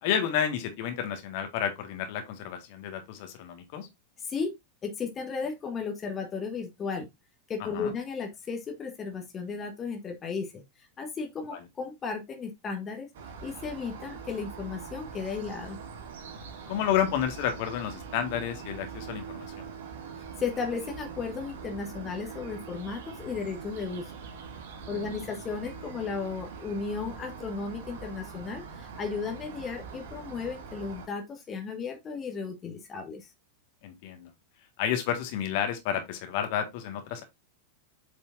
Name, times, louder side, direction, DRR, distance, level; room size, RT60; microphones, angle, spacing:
voice 1, 0.0-3.9 7.6-7.9 16.7-19.6 24.9-25.0 33.8-34.3 34.8-37.2, left 9 dB, 50° left, 1.7 m, -31 dB
voice 2, 4.2-4.5 4.8-7.1 7.5-13.1 13.4-15.8 20.4-24.1 24.9-33.3, left 5 dB, 25° left, 1.4 m, -35 dB
sound 1, 13.1-31.1, right 6 dB, 55° right, 1.6 m, -43 dB
7.9 x 5.4 x 2.6 m
figure-of-eight pair, 90°, 0 cm